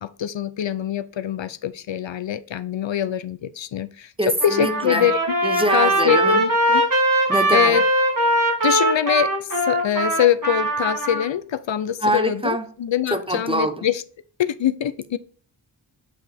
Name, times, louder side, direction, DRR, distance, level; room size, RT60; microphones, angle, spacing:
voice 1, 0.0-4.1 4.4-5.2 5.7-6.8 7.1-7.8 8.6-14.0 14.4-15.2, left 10 dB, 75° left, 0.5 m, -24 dB
voice 2, 4.2-5.1 5.4-6.4 7.3-7.8 12.0-12.7 13.1-13.8, equal, 10° right, 0.8 m, -24 dB
Trumpet, 4.4-11.2, right 1 dB, 45° right, 2.5 m, -21 dB
8.1 x 4.7 x 3.4 m
wide cardioid pair, 50°, 46 cm